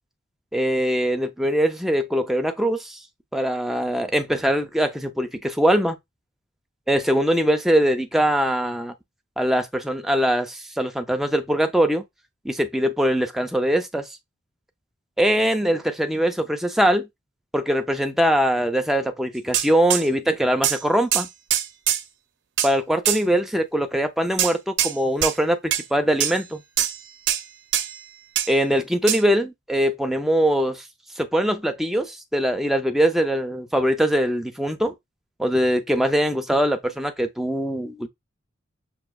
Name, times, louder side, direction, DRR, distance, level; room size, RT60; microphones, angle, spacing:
voice 1, 0.5-3.0 3.3-6.0 6.9-8.9 9.4-12.0 12.4-14.1 15.2-17.1 17.5-21.3 22.6-26.6 28.5-30.8 31.2-34.9 35.4-38.1, equal, ahead, 0.4 m, -22 dB
sound 1, 19.5-20.0 20.6-20.8 21.1-22.0 22.6-22.7 23.0-23.2 24.4-24.9 25.2-25.3 25.7-25.8 26.2-26.4 26.8-27.0 27.3-27.4 27.7-28.0 28.4-28.5 29.1-29.2, right 11 dB, 60° right, 0.4 m, -23 dB
5.9 x 2.6 x 2.2 m
head